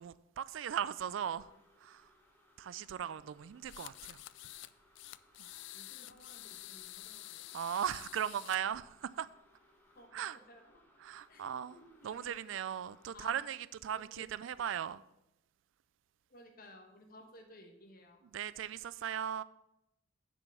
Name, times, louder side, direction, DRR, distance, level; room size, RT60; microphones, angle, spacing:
voice 1, 0.0-1.5 1.8-2.1 2.6-4.2 5.4-5.5 7.5-9.3 10.1-10.4 11.0-11.8 12.0-15.0 18.3-19.4, right 9 dB, 75° right, 0.3 m, -38 dB
sound 1, 1.1-13.3, left 1 dB, 10° left, 1.4 m, -67 dB
sound 2, 3.7-4.7 5.0-8.6, left 16 dB, 65° left, 0.3 m, -49 dB
voice 2, 5.7-7.5 10.0-10.1 10.3-10.8 11.3-11.4 11.7-12.4 13.1-13.4 13.9-14.3 16.3-18.2, left 1 dB, 50° left, 1.3 m, -57 dB
6.9 x 5.1 x 6.7 m
head